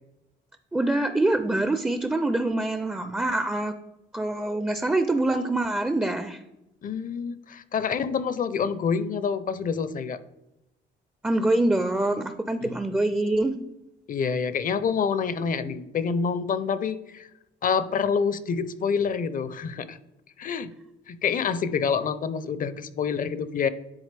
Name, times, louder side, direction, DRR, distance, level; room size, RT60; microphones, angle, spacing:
voice 1, 0.7-3.7 4.1-6.4 11.2-13.6, right 2 dB, 5° right, 9 dB, 0.4 m, -25 dB
voice 2, 6.8-10.2 12.6-12.7 14.1-17.3 17.6-20.0 20.4-20.7 21.1-23.7, left 6 dB, 45° left, 14 dB, 0.5 m, -27 dB
9.8 x 3.9 x 3.3 m, 0.91 s
cardioid pair, 90°, 20 cm